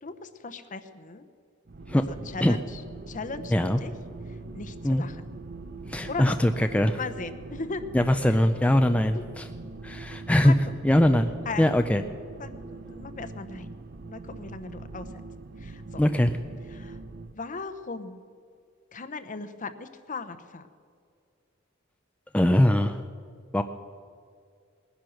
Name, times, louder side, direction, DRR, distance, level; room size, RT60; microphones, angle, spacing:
voice 1, 0.0-1.3 1.9-2.8 3.1-3.9 4.3-5.2 6.1-6.4 7.0-7.8 8.3-8.4 9.1-9.2 10.4-10.6 11.4-11.7 12.4-13.7 14.0-15.1 15.6-16.0 16.7-17.0 17.3-18.2 18.9-20.7, left 4 dB, 40° left, 11 dB, 0.8 m, -38 dB
sound 1, 1.7-17.3, right 3 dB, 50° right, 0.6 m, -42 dB
voice 2, 5.9-7.0 7.9-9.5 9.8-10.5 10.8-11.3 11.6-12.0 16.0-16.3 22.3-23.0 23.5-23.6, left 1 dB, 5° left, 7 dB, 0.4 m, -21 dB
19.5 x 10.5 x 6.4 m, 2.3 s
head